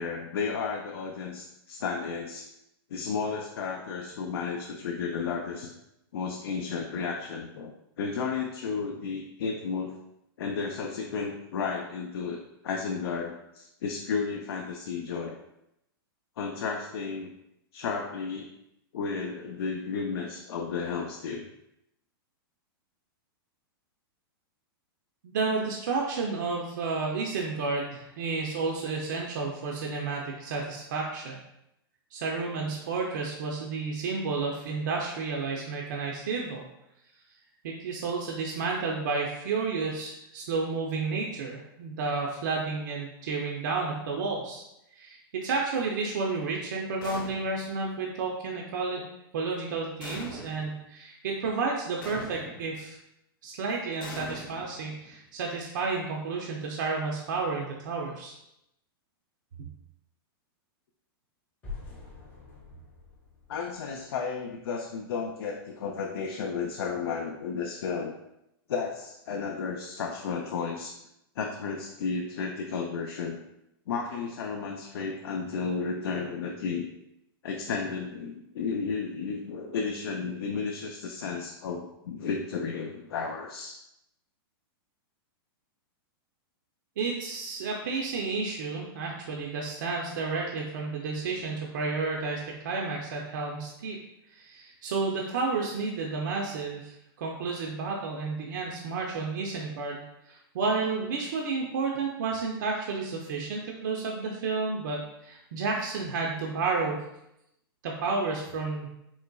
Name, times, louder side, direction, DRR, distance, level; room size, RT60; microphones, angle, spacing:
voice 1, 0.0-2.5 2.9-5.7 6.1-7.7 8.0-9.9 10.4-15.4 16.4-17.3 17.7-18.5 18.9-21.5 63.5-68.1 68.7-71.0 71.4-73.4 73.9-76.9 77.4-83.8, left 5 dB, 80° left, 2 dB, 0.4 m, -33 dB
voice 2, 25.2-31.4 32.1-36.7 37.6-44.6 44.9-49.0 49.3-53.0 53.4-58.4 87.0-94.0 94.3-107.1 107.8-108.9, right 4 dB, 50° right, -1 dB, 0.5 m, -31 dB
sound 1, 47.0-47.8 50.0-50.8 52.0-52.8 54.0-55.2, left 2 dB, 55° left, 0.8 m, -42 dB
sound 2, 61.6-64.6, left 4 dB, 10° left, 0.5 m, -45 dB
3.8 x 3.0 x 2.2 m, 0.83 s
supercardioid pair, 175°, 13 cm